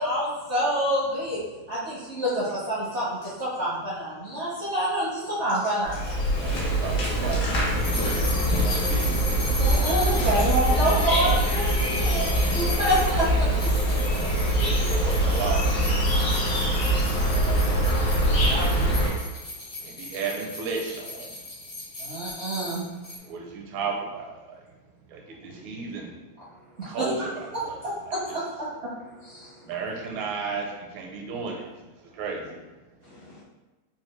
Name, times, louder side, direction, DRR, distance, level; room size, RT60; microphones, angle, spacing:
voice 1, 0.0-1.4 1.7-6.0 9.5-13.7 18.4-18.7 22.0-22.8 26.8-27.0 27.8-28.7 29.2-29.5, equal, 65° right, -9 dB, 0.6 m, -27 dB
Insect, 5.8-19.1, right 1 dB, 65° left, 1.6 m, -23 dB
voice 2, 6.4-9.0 10.3-11.4 13.9-15.6 18.4-18.9 20.0-21.3 23.3-24.3 25.1-26.1 26.8-27.8 29.6-30.7 30.9-31.6 32.2-32.4, right 5 dB, 85° right, 0 dB, 1.6 m, -34 dB
sound 1, 7.8-23.2, left 2 dB, 45° left, 0.6 m, -36 dB
voice 3, 16.6-18.0 32.4-32.5 33.1-33.4, left 4 dB, 85° left, 0 dB, 1.5 m, -49 dB
3.9 x 2.3 x 3.1 m, 1.1 s
omnidirectional pair, 2.3 m